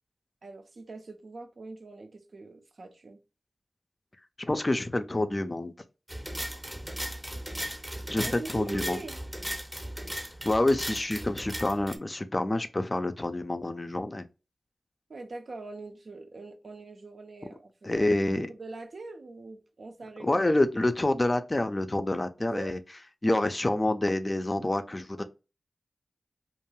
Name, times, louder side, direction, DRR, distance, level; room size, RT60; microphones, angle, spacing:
voice 1, 0.4-3.2 8.2-9.2 15.1-20.4 22.5-22.8, right 3 dB, 70° right, 0.4 m, -43 dB
voice 2, 4.4-5.7 8.1-9.0 10.4-14.3 17.8-18.5 20.2-22.8 23.2-25.2, left 1 dB, 35° left, 0.3 m, -27 dB
sound 1, 6.1-12.0, equal, 15° right, 0.6 m, -37 dB
2.5 x 2.2 x 3.0 m
cardioid pair, 40°, 0 cm